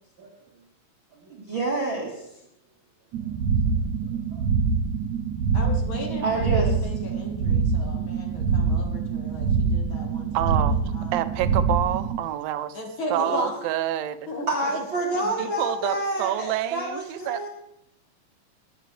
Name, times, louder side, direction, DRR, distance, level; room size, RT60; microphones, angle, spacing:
voice 1, 1.2-2.2 4.3-4.4 6.2-6.7 13.3-13.6 14.5-17.5, right 2 dB, 45° right, -3 dB, 2.0 m, -28 dB
sound 1, 3.1-12.2, right 5 dB, 70° right, 1.9 m, -25 dB
voice 2, 5.5-10.5 10.9-11.2 12.7-13.6 14.3-14.8 15.2-15.3, left 2 dB, 45° left, 2 dB, 2.1 m, -35 dB
voice 3, 10.3-10.8 11.1-12.8 13.1-14.3 15.4-17.5, right 13 dB, 90° right, 12 dB, 2.5 m, -27 dB
21.5 x 8.8 x 3.3 m, 0.80 s
omnidirectional pair, 4.0 m